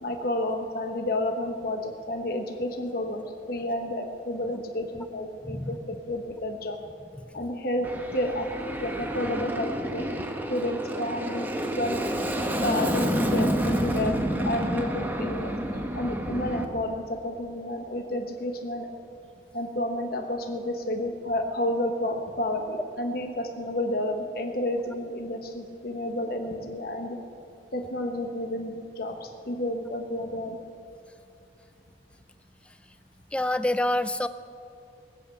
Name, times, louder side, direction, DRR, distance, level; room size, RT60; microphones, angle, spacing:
voice 1, 0.0-6.8 7.3-8.5 8.8-10.1 10.5-11.5 11.8-12.0 12.6-14.2 14.4-15.5 15.9-18.9 19.5-27.2 27.7-30.6, left 1 dB, 50° left, 3 dB, 1.0 m, -30 dB
Aircraft, 7.8-16.7, right 1 dB, 10° right, 0.9 m, -29 dB
voice 2, 33.3-34.3, left 1 dB, 5° left, 13 dB, 0.4 m, -26 dB
20.0 x 7.6 x 8.2 m, 2.7 s
head